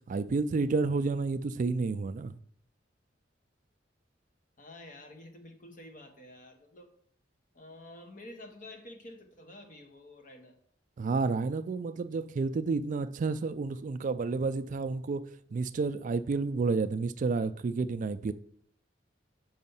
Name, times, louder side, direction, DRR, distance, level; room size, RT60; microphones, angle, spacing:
voice 1, 0.0-2.4 11.0-15.2 15.5-18.3, right 4 dB, 45° right, 0.3 m, -30 dB
voice 2, 4.6-6.9 7.5-10.6, left 1 dB, 45° left, 1.1 m, -49 dB
5.6 x 5.2 x 5.5 m
head